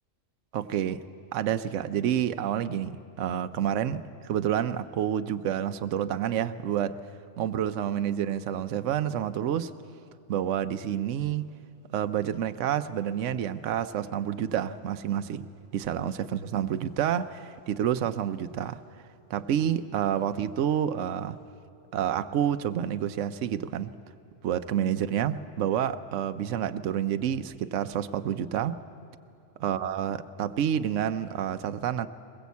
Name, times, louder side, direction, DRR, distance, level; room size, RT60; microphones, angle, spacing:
voice 1, 0.5-1.0 1.3-6.9 7.4-9.7 10.3-11.4 11.9-15.5 15.7-18.8 19.3-21.4 21.9-23.9 24.4-28.8 29.6-32.1, right 10 dB, 70° right, 10 dB, 1.0 m, -29 dB
22.0 x 20.5 x 8.3 m, 2.7 s
omnidirectional pair, 1.3 m